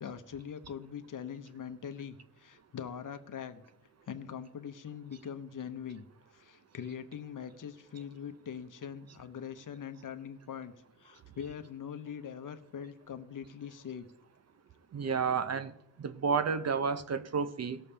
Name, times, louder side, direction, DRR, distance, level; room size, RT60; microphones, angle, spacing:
voice 1, 0.0-3.6 4.1-6.1 6.3-14.1, left 8 dB, 50° left, 10 dB, 0.9 m, -42 dB
voice 2, 14.9-15.7 16.0-17.8, right 6 dB, 40° right, 12 dB, 0.6 m, -31 dB
18.5 x 7.0 x 3.3 m, 0.82 s
cardioid pair, 120°, 42 cm